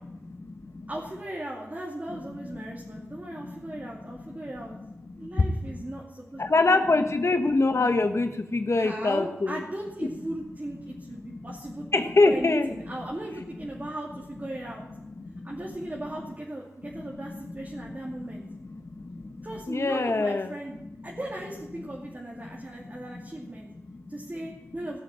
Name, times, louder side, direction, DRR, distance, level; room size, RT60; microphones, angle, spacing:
voice 1, 0.0-0.9 2.1-2.2 2.7-3.8 4.3-4.5 5.1-5.8 6.4-9.6 10.0-10.1 11.2-11.4 11.9-12.7 13.8-13.9 15.0-15.9 16.9-17.8 18.3-20.5 22.6-23.3 23.9-24.1, left 3 dB, 60° left, 7 dB, 1.2 m, -27 dB
voice 2, 0.9-4.7 5.2-6.8 8.7-11.9 12.2-14.8 15.4-18.4 19.4-23.7 24.1-25.0, right 1 dB, 35° right, -3 dB, 2.5 m, -37 dB
16.0 x 7.3 x 7.6 m, 0.92 s
cardioid pair, 50°, 5 cm